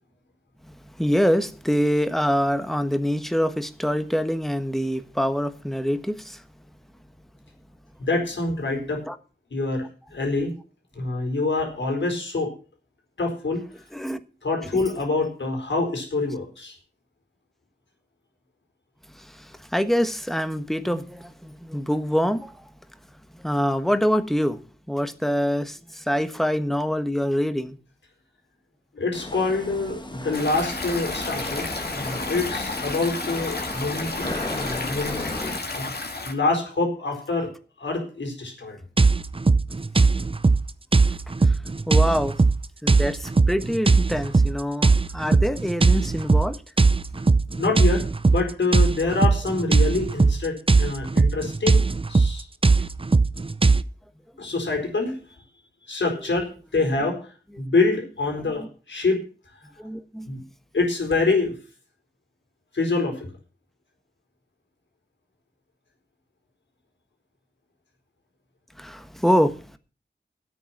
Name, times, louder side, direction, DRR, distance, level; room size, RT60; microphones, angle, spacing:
voice 1, 0.6-6.4 9.1-9.2 13.9-14.3 19.1-22.7 23.3-24.6 24.9-27.8 41.4-41.6 41.9-42.4 42.8-46.6 54.4-54.5 59.8-60.3 68.8-69.8, equal, ahead, 1.3 m, -25 dB
voice 2, 8.0-9.0 9.5-10.6 10.9-12.5 13.2-13.8 14.4-16.8 28.9-35.9 36.2-38.8 47.6-51.8 52.1-52.5 54.4-55.2 55.9-59.2 60.3-60.4 60.7-61.6 62.7-63.3, left 3 dB, 85° left, 4.6 m, -26 dB
sound 1, 29.1-35.6, left 1 dB, 25° left, 1.4 m, -34 dB
Stream, 30.3-36.3, left 3 dB, 60° left, 2.4 m, -32 dB
sound 2, 39.0-53.8, right 3 dB, 30° right, 0.6 m, -20 dB
12.5 x 8.8 x 6.0 m
wide cardioid pair, 70°, 19 cm